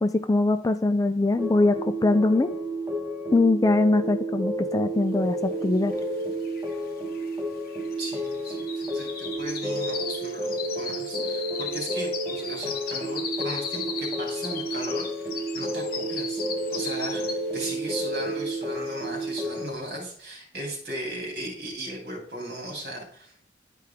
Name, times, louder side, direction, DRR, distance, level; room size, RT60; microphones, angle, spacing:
voice 1, 0.0-2.5 3.3-5.9, left 2 dB, 20° left, 9 dB, 0.3 m, -22 dB
sound 1, 1.4-19.7, right 1 dB, 10° right, 1.1 m, -31 dB
sound 2, 5.9-6.0 6.2-17.7 18.1-18.4 18.8-18.9, left 6 dB, 50° left, 1.1 m, -37 dB
voice 2, 8.0-23.4, right 1 dB, 55° right, 0 dB, 2.9 m, -37 dB
10.5 x 4.7 x 3.5 m, 0.63 s
head